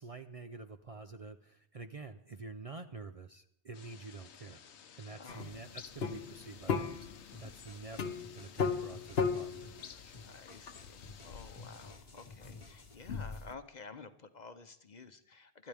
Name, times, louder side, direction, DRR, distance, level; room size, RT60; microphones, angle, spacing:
voice 1, 0.0-4.6 5.0-10.1, right 3 dB, 40° right, 8 dB, 0.6 m, -48 dB
sound 1, 3.7-11.9, left 8 dB, 90° left, 1.1 m, -55 dB
voice 2, 5.2-5.5 10.2-15.7, left 4 dB, 45° left, 9 dB, 0.9 m, -51 dB
sound 2, 5.3-13.5, left 5 dB, 65° left, 1.1 m, -38 dB
sound 3, 7.3-12.9, left 2 dB, 30° left, 1.3 m, -55 dB
24.5 x 12.5 x 3.5 m, 0.75 s
omnidirectional pair, 1.1 m